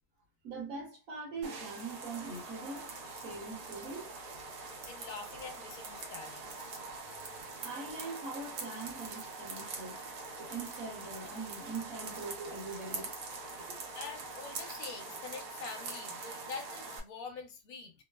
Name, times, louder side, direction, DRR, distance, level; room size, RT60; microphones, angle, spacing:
voice 1, 0.4-4.1 7.6-10.0 10.4-13.1 13.6-13.8, right 3 dB, 60° right, 1.3 m, -42 dB
sound 1, 1.4-17.0, right 3 dB, 75° right, 1.3 m, -43 dB
voice 2, 4.8-6.7 13.9-17.9, left 5 dB, 65° left, 1.1 m, -45 dB
3.0 x 2.1 x 2.3 m
omnidirectional pair, 1.7 m